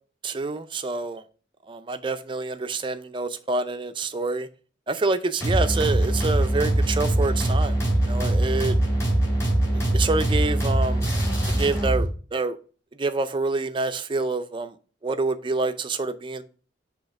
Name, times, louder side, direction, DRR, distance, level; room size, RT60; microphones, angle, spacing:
voice 1, 0.2-1.2 1.7-4.5 4.9-7.7 8.1-8.7 9.9-11.0 11.6-12.6 13.0-14.7 15.0-16.4, right 3 dB, 25° right, 0.4 m, -27 dB
sound 1, 5.4-12.1, right 1 dB, 15° left, 2.5 m, -22 dB
6.4 x 2.9 x 5.7 m
head